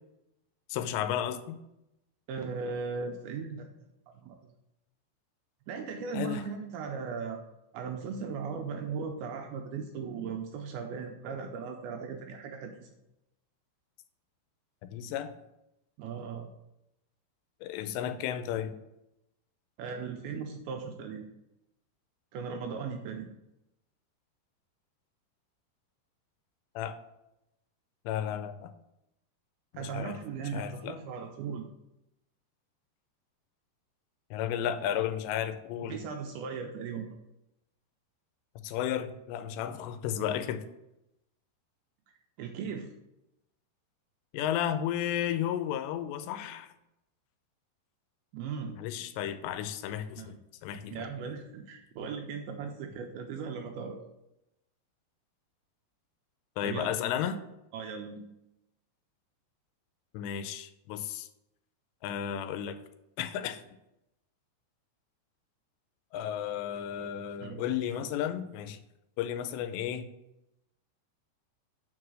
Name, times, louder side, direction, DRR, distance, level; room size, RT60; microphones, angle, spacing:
voice 1, 0.7-1.6 6.1-6.4 14.8-15.4 17.6-18.8 26.8-26.9 28.1-28.7 29.8-30.2 30.5-31.0 34.3-36.0 38.6-40.6 44.3-46.7 48.8-50.4 50.6-51.0 56.6-57.4 60.1-61.3 62.0-62.8 63.2-63.6 66.1-68.8 69.2-70.1, left 10 dB, 90° left, 10 dB, 2.8 m, -33 dB
voice 2, 2.3-3.7 4.1-4.5 5.7-7.4 7.7-12.9 16.0-16.5 19.8-21.3 22.3-23.4 29.7-31.7 35.9-37.1 42.4-42.9 48.3-48.8 50.2-50.4 50.9-54.0 56.6-56.9 57.7-58.2 67.4-67.6, right 5 dB, 85° right, 3 dB, 2.3 m, -38 dB
6.1 x 4.7 x 6.2 m, 0.88 s
omnidirectional pair, 4.9 m